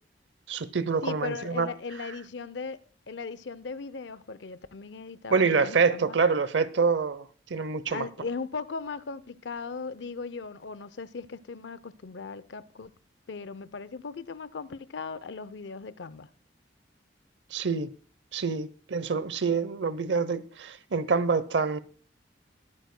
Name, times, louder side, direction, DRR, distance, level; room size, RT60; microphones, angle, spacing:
voice 1, 0.5-1.7 5.3-8.1 17.5-17.9 18.3-21.8, right 5 dB, 75° right, 0.7 m, -26 dB
voice 2, 1.0-2.8 3.1-6.2 7.9-12.9 13.3-16.3, left 4 dB, 70° left, 0.6 m, -38 dB
21.5 x 9.3 x 2.2 m
head